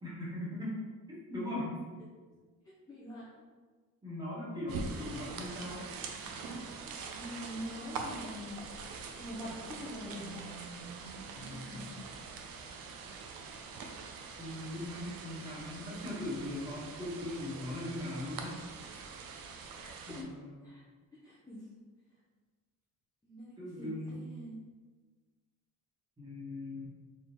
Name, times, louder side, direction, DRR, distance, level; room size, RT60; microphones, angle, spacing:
voice 1, 0.0-1.9 4.0-5.8 11.3-11.9 14.4-18.5 20.0-20.6 23.6-24.3 26.2-26.8, left 1 dB, 10° right, -8 dB, 1.4 m, -40 dB
voice 2, 2.9-3.3 7.2-8.6 9.2-10.4 11.7-11.9 19.8-20.3 20.6-20.8 21.2-21.7 23.2-24.6, left 1 dB, 10° left, -7 dB, 0.6 m, -44 dB
sound 1, 4.7-20.2, right 4 dB, 70° right, 0.6 m, -44 dB
4.1 x 3.7 x 3.0 m, 1.4 s
cardioid pair, 175°, 37 cm